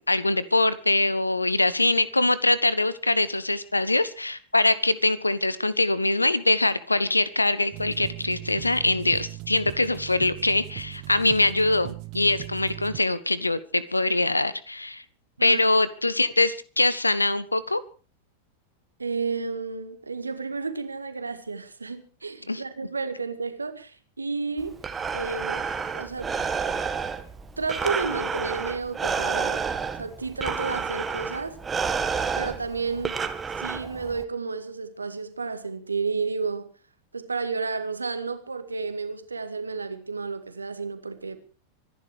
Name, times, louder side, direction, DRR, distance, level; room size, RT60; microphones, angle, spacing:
voice 1, 0.0-15.0 15.4-17.8 22.5-22.6, left 2 dB, 85° left, 1.2 m, -23 dB
sound 1, 7.7-13.0, right 23 dB, 40° right, 1.0 m, -39 dB
voice 2, 19.0-24.8 25.1-25.6 25.9-26.3 27.6-29.6 30.0-31.6 32.4-33.2 33.6-36.7 37.1-41.4, right 4 dB, 80° right, 2.1 m, -31 dB
Breathing, 24.6-34.2, right 5 dB, 15° right, 1.8 m, -30 dB
25.0 x 11.0 x 4.8 m
figure-of-eight pair, 90°, 0 cm